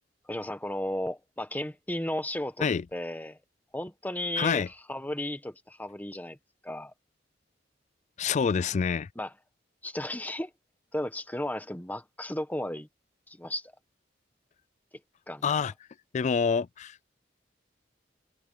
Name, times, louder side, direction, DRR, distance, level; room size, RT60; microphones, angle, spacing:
voice 1, 0.3-3.4 3.7-4.6 4.9-6.4 6.6-6.9 9.2-9.3 9.8-10.5 10.9-12.9 13.3-13.7 15.3-15.4, left 1 dB, 10° left, 1.2 m, -34 dB
voice 2, 4.4-4.7 8.2-9.1 15.4-15.7 16.1-17.1, left 6 dB, 40° left, 0.3 m, -27 dB
head